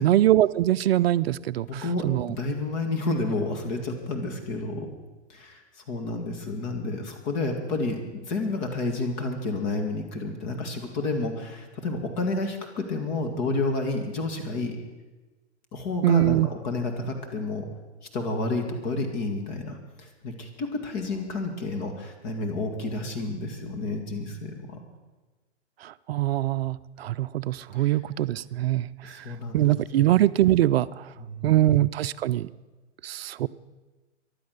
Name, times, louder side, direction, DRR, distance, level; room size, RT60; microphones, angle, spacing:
voice 1, 0.0-2.4 16.0-16.5 25.8-29.3 29.5-31.1 31.4-32.5 33.0-33.5, right 14 dB, 60° right, 14 dB, 0.5 m, -23 dB
voice 2, 1.7-4.9 5.3-5.6 5.9-14.8 15.7-17.7 18.1-24.8 27.7-27.8 29.0-29.7 31.2-31.7, left 2 dB, 40° left, 4 dB, 2.3 m, -30 dB
15.5 x 11.5 x 6.6 m, 1.2 s
hypercardioid pair, 145°, 36 cm